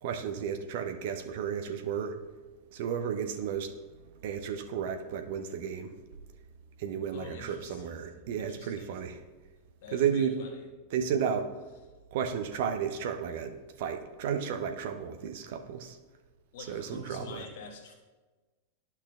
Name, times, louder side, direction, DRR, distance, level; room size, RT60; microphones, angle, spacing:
voice 1, 0.0-2.2 2.7-3.9 4.2-5.9 6.8-9.2 9.9-10.3 10.9-11.5 12.1-16.0 16.7-17.4, right 7 dB, 50° right, 6 dB, 0.6 m, -33 dB
voice 2, 7.0-9.0 9.8-10.7 16.5-17.9, left 4 dB, 50° left, 2 dB, 1.2 m, -47 dB
11.5 x 5.7 x 2.3 m, 1.3 s
figure-of-eight pair, 90°, 0 cm